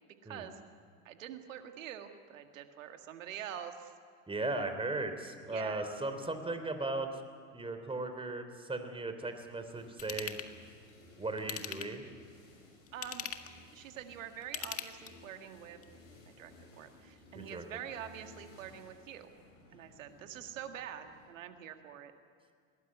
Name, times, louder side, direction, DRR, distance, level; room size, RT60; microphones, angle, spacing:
voice 1, 0.2-0.6 1.1-3.9 5.5-5.8 12.9-13.3 13.7-15.8 16.3-16.5 16.8-19.3 19.7-22.1, right 10 dB, 80° right, 7 dB, 2.0 m, -45 dB
voice 2, 4.3-7.1 7.5-10.4 11.2-12.0 17.3-17.6, right 2 dB, 15° right, 7 dB, 3.4 m, -37 dB
sound 1, 9.3-21.3, left 2 dB, 80° left, 7.0 m, -58 dB
Ratchet pawl / Tools, 10.0-10.5 11.4-12.1 12.9-13.6 14.4-15.3 15.8-15.9, left 9 dB, 35° left, 1.8 m, -40 dB
21.0 x 18.5 x 9.8 m, 2.2 s
hypercardioid pair, 75°, 39 cm